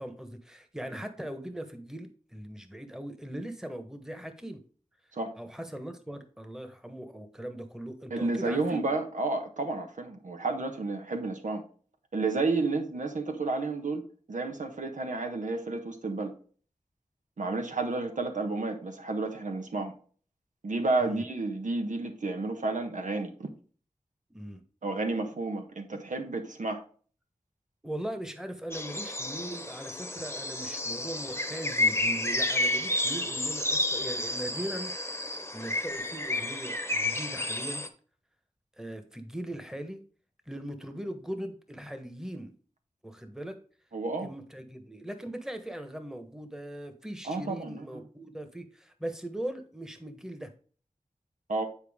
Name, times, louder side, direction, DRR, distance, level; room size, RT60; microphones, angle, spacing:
voice 1, 0.0-4.6 5.4-8.8 21.0-21.3 24.3-24.6 27.8-34.9 35.5-37.8 38.8-40.0 40.5-42.5 43.0-43.6 44.2-50.5, right 1 dB, 5° right, 1.3 m, -39 dB
voice 2, 8.1-11.6 12.1-16.3 17.4-19.9 20.6-23.5 24.8-26.8 43.9-44.3 47.2-47.8 51.5-51.7, right 3 dB, 85° right, 1.3 m, -31 dB
sound 1, 28.7-37.9, left 1 dB, 20° left, 1.0 m, -31 dB
9.2 x 4.6 x 3.6 m
wide cardioid pair, 50°, 13 cm